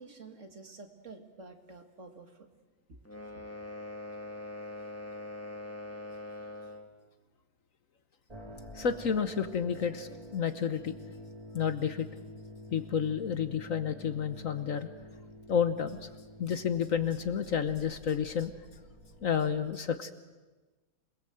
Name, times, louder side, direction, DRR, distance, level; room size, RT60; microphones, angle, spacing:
voice 1, 0.0-2.5 2.9-3.0 3.4-3.5, right 3 dB, 45° right, 5 dB, 2.3 m, -49 dB
sound 1, 3.0-6.9, left 2 dB, 10° left, 1.8 m, -42 dB
sound 2, 8.3-19.5, equal, 20° right, 3.3 m, -49 dB
voice 2, 8.7-10.9 11.5-12.1 12.7-14.9 15.5-16.1 16.4-18.5 19.2-20.1, left 7 dB, 55° left, 10 dB, 1.3 m, -30 dB
27.0 x 20.0 x 7.8 m, 1.2 s
omnidirectional pair, 1.8 m